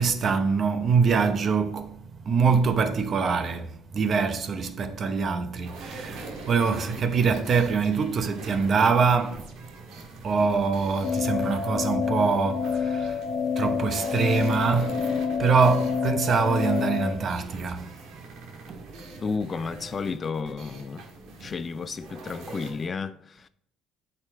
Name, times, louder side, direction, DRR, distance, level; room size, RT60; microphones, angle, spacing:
voice 1, 0.0-9.6 9.9-13.3 13.5-18.4 18.7-18.8 21.4-21.5, right 5 dB, 40° right, 0.8 m, -24 dB
sound 1, 5.6-22.9, right 3 dB, 70° right, 1.6 m, -43 dB
sound 2, 11.0-17.1, left 6 dB, 65° left, 1.4 m, -28 dB
voice 2, 19.2-21.1 21.4-23.5, left 5 dB, 30° left, 0.4 m, -32 dB
8.3 x 5.0 x 4.4 m
cardioid pair, 125°, 0 cm